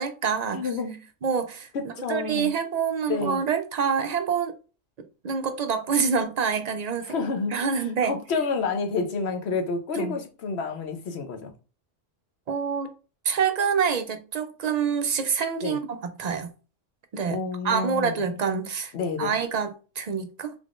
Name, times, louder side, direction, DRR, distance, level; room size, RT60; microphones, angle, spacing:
voice 1, 0.0-0.7 1.2-4.5 5.2-8.2 10.0-10.2 12.5-12.9 13.2-16.5 17.1-18.9 19.2-20.5, right 6 dB, 60° right, 0.4 m, -27 dB
voice 2, 0.5-1.0 1.7-2.5 3.1-3.4 7.0-7.6 8.0-11.5 15.6-15.8 17.3-18.2 18.9-19.4, left 4 dB, 70° left, 1.0 m, -29 dB
3.5 x 3.5 x 2.4 m
omnidirectional pair, 1.2 m